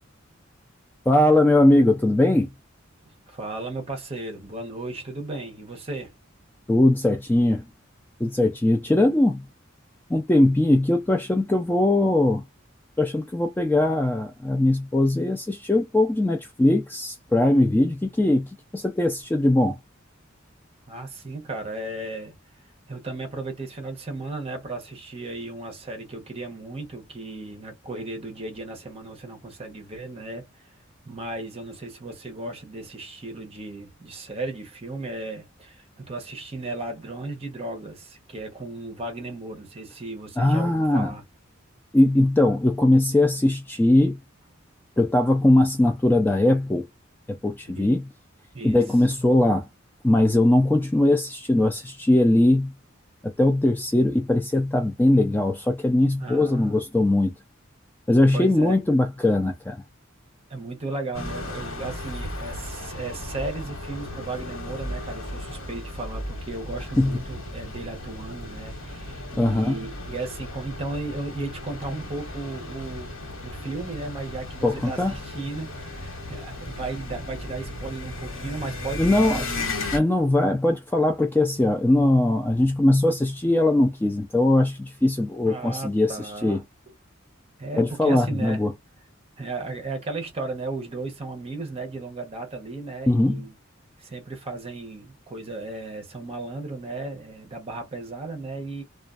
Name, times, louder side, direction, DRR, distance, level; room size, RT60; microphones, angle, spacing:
voice 1, 1.1-2.5 6.7-7.6 8.2-9.4 10.1-12.4 13.0-18.5 18.7-19.8 40.4-41.1 41.9-44.2 45.0-46.9 47.4-48.0 48.6-49.7 50.0-52.7 53.4-57.3 58.1-59.8 67.0-67.2 69.4-69.8 74.6-75.1 79.0-79.4 79.9-86.6 87.8-88.7 93.1-93.4, left 1 dB, 10° left, 0.3 m, -20 dB
voice 2, 3.3-6.1 20.9-22.3 22.9-30.7 31.0-41.2 47.7-47.9 48.5-48.8 56.2-56.8 58.3-58.8 60.5-73.1 73.4-79.7 85.5-86.6 87.6-88.7 89.4-93.5 94.0-98.8, right 2 dB, 30° right, 0.8 m, -35 dB
sound 1, 61.1-80.0, left 1 dB, 90° left, 1.1 m, -35 dB
2.4 x 2.3 x 2.3 m
head